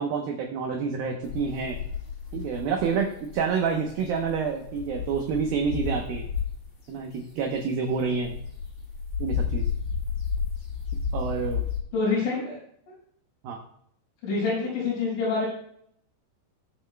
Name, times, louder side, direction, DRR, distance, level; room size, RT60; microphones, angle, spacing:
voice 1, 0.0-1.8 2.3-6.3 6.9-8.4 9.2-9.6 11.1-11.6 13.4-13.6, right 5 dB, 75° right, 2 dB, 2.2 m, -28 dB
sound 1, 1.2-6.7 7.2-11.8, left 6 dB, 55° left, 1.3 m, -32 dB
voice 2, 11.9-12.6 12.9-13.0 14.2-15.5, left 4 dB, 85° left, -8 dB, 7.3 m, -26 dB
20.5 x 7.0 x 2.2 m, 0.68 s
omnidirectional pair, 5.2 m